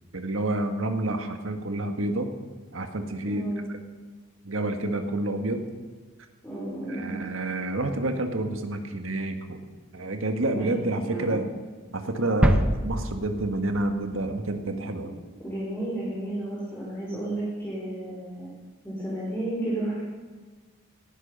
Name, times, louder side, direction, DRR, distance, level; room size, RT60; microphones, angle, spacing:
voice 1, 0.1-2.3 2.7-3.5 4.4-5.6 6.9-9.6 9.9-11.5 11.9-15.1, right 2 dB, 70° right, 6 dB, 1.7 m, -29 dB
voice 2, 3.3-3.7 6.4-7.2 10.5-10.7 11.0-11.4 15.4-18.5 18.8-20.0, right 1 dB, 10° left, -8 dB, 4.0 m, -32 dB
sound 1, 12.4-14.3 14.5-14.6, equal, 5° right, 0.7 m, -25 dB
17.5 x 11.0 x 5.5 m, 1.4 s
head